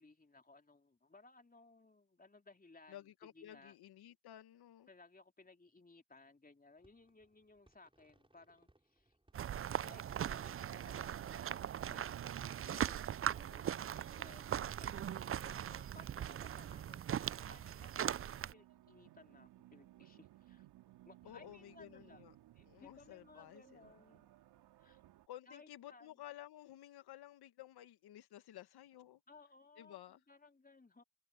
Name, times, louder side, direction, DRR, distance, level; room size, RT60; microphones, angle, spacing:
voice 1, 0.0-3.0 3.3-3.8 4.9-9.1 9.8-12.2 12.6-17.2 17.5-20.7 21.0-22.2 22.5-24.3 24.8-25.0 25.5-26.2 29.3-30.0 30.3-31.0, left 3 dB, 20° left, 3.1 m, -62 dB
voice 2, 2.9-4.9 21.2-22.3 22.7-24.0 25.3-29.2 29.8-30.2, left 13 dB, 70° left, 1.9 m, -54 dB
sound 1, 6.8-14.2, right 1 dB, 15° right, 6.6 m, -72 dB
sound 2, 9.3-18.5, right 10 dB, 35° right, 0.5 m, -40 dB
sound 3, 10.4-25.3, right 15 dB, 75° right, 3.6 m, -61 dB
hypercardioid pair, 45°, 39 cm